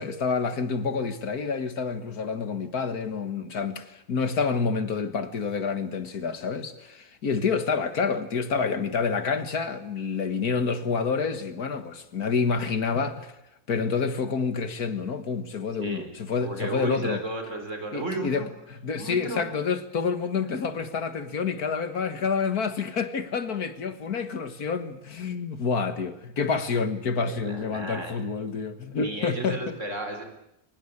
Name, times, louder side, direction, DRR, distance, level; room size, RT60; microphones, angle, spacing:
voice 1, 0.0-13.4 13.7-17.2 17.9-29.8, left 5 dB, 70° left, 2.1 m, -28 dB
voice 2, 15.8-16.1 16.4-18.5 19.0-19.4 27.2-28.2 29.0-30.2, right 2 dB, 50° right, 4.6 m, -34 dB
24.5 x 19.5 x 8.6 m
omnidirectional pair, 1.7 m